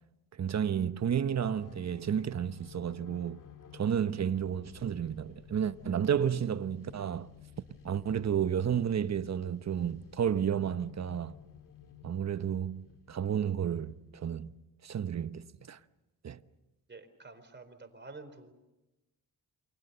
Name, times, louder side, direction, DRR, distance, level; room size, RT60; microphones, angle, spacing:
voice 1, 0.4-3.4 3.7-7.3 7.8-11.3 12.0-14.5 14.8-15.8 16.2-16.4, right 8 dB, 45° right, 1.0 m, -31 dB
sound 1, 1.4-14.6, left 8 dB, 55° left, 2.1 m, -54 dB
voice 2, 16.9-18.5, right 3 dB, 30° right, 4.2 m, -49 dB
28.5 x 24.0 x 6.8 m
cardioid pair, 95°, 38 cm